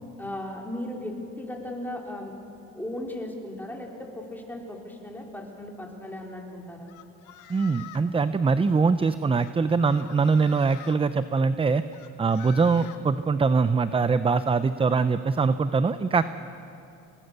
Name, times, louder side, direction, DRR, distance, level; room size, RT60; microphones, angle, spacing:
voice 1, 0.2-2.3 2.7-6.9, left 1 dB, 5° left, 0 dB, 4.5 m, -36 dB
sound 1, 6.9-8.1 9.3-11.0 11.9-13.0, left 12 dB, 75° left, 1.5 m, -46 dB
voice 2, 7.5-11.8 12.2-16.2, right 4 dB, 20° right, 12 dB, 0.6 m, -23 dB
26.5 x 20.5 x 6.8 m, 2.7 s
supercardioid pair, 90°, 30 cm